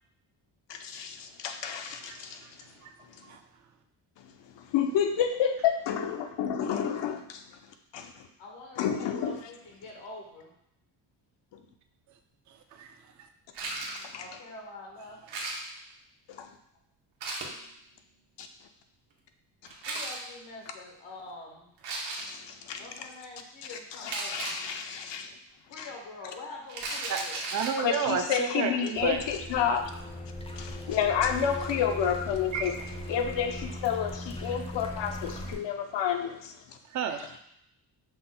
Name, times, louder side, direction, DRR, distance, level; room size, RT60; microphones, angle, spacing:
voice 1, 0.7-2.4 4.2-4.3 4.6-7.4 7.9-8.1 8.8-9.4 14.1-14.2 16.3-16.5 18.4-18.5 22.2-22.8 23.7-25.3 25.8-25.9 26.9-27.0 27.8-29.9 30.6-32.7 33.1-36.8, left 8 dB, 75° left, 6 dB, 0.6 m, -30 dB
voice 2, 2.1-2.5 2.8-2.9 3.2-3.4 12.5-13.0 27.1-29.2 32.5-32.7 36.9-37.4, right 7 dB, 45° right, 6 dB, 0.4 m, -32 dB
voice 3, 8.4-10.5 14.1-15.2 19.9-21.7 22.8-24.6 25.7-27.5, left 2 dB, 90° left, -1 dB, 1.2 m, -45 dB
sound 1, 13.5-14.1 15.3-15.9 17.2-17.5 19.7-20.2 21.8-22.4 24.1-24.6 26.7-27.8, right 2 dB, 70° right, 1.0 m, -35 dB
sound 2, 28.9-35.6, left 1 dB, 15° left, 0.5 m, -39 dB
5.9 x 2.1 x 3.8 m, 0.76 s
cardioid pair, 125°, 44 cm